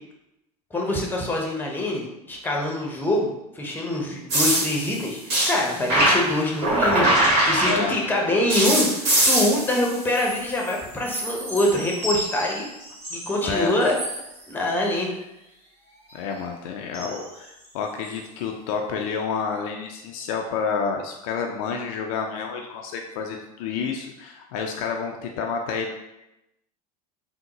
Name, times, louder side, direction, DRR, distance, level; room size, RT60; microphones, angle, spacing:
voice 1, 0.7-12.7 13.1-13.9 14.5-15.1, left 1 dB, 10° left, -1 dB, 0.8 m, -25 dB
sound 1, 4.3-8.1 8.5-10.8 11.0-13.4 13.8-14.2 16.9-17.2 18.0-18.1, right 1 dB, 55° right, 1.4 m, -23 dB
voice 2, 7.7-8.0 13.4-13.7 16.1-25.9, left 5 dB, 60° left, 2 dB, 0.4 m, -29 dB
3.5 x 2.1 x 2.9 m, 0.90 s
hypercardioid pair, 80°, 20 cm